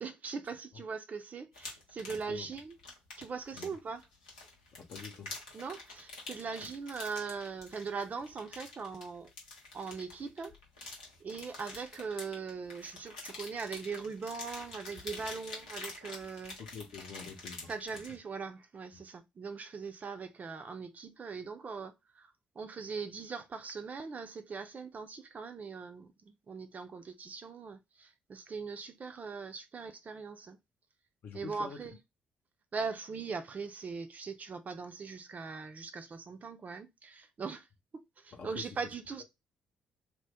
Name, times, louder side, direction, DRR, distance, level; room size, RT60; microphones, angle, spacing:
voice 1, 0.0-2.7 3.2-4.0 5.5-9.3 9.7-10.5 10.8-10.9 11.2-16.6 17.7-30.6 31.3-32.0 32.7-37.7 37.9-39.2, right 5 dB, 40° right, 0.5 m, -41 dB
sound 1, 1.5-18.2, left 3 dB, 85° left, 0.7 m, -47 dB
voice 2, 2.1-2.5 3.5-3.7 4.8-5.4 16.7-17.7 31.2-31.8 38.3-38.7, left 5 dB, 55° left, 0.8 m, -46 dB
2.9 x 2.0 x 3.5 m
hypercardioid pair, 45°, 4 cm